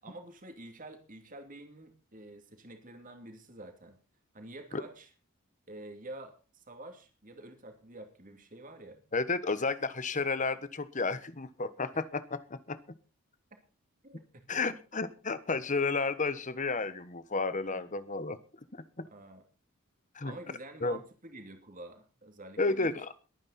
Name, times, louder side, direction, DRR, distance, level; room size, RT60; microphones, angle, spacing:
voice 1, 0.0-4.0 4.3-5.1 5.7-9.0 11.9-12.0 14.0-14.6 17.7-18.0 19.0-19.4 20.2-22.9, right 2 dB, 40° right, 5 dB, 2.8 m, -48 dB
voice 2, 9.1-12.8 14.5-18.4 19.0-19.1 20.1-20.4 20.8-21.0 22.6-23.3, left 3 dB, 35° left, 13 dB, 1.2 m, -32 dB
22.0 x 9.7 x 4.3 m, 0.35 s
head